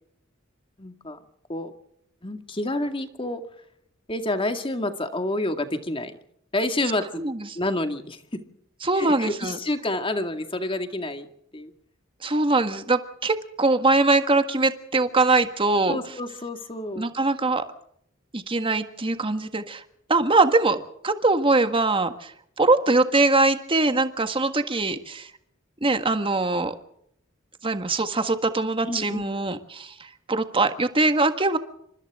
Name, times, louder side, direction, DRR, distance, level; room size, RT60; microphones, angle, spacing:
voice 1, 0.8-1.2 1.5-1.7 2.2-3.4 4.1-6.2 6.5-7.2 7.5-8.4 9.0-11.3 11.5-11.7 15.9-17.1 28.9-29.2, left 1 dB, 25° left, 7 dB, 2.1 m, -29 dB
voice 2, 8.8-9.6 12.2-16.0 17.0-17.6 18.3-19.8 20.1-22.3 22.6-25.3 25.8-26.7 27.6-31.6, right 3 dB, 25° right, 8 dB, 1.7 m, -22 dB
28.5 x 25.5 x 3.7 m, 0.71 s
head